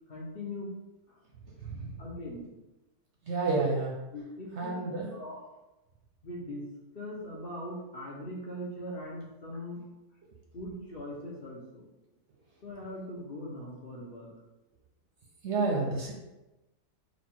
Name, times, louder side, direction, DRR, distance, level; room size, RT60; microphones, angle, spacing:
voice 1, 0.1-0.7 1.1-1.2 2.0-2.5 3.5-3.6 4.1-4.8 5.1-5.4 6.2-6.6 6.9-9.8 10.5-11.9 12.6-14.3, left 1 dB, 45° left, -4 dB, 1.0 m, -40 dB
voice 2, 1.6-2.0 3.2-3.9 4.5-5.2 15.4-16.1, right 3 dB, 60° right, -1 dB, 0.9 m, -30 dB
4.2 x 2.4 x 4.4 m, 1.0 s
omnidirectional pair, 1.5 m